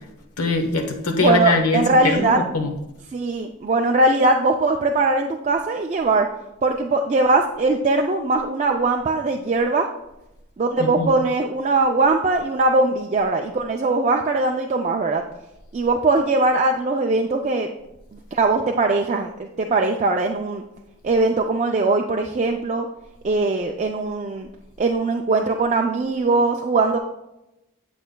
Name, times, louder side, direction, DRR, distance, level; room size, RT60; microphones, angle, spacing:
voice 1, 0.4-2.7 10.8-11.1, left 2 dB, 85° left, 5 dB, 1.0 m, -22 dB
voice 2, 1.2-2.4 3.1-6.3 6.6-9.9 10.6-15.2 15.7-17.7 18.1-20.6 21.0-22.9 23.2-24.5 24.8-27.0, right 3 dB, 30° right, 2 dB, 0.3 m, -20 dB
8.5 x 7.8 x 2.2 m, 0.91 s
head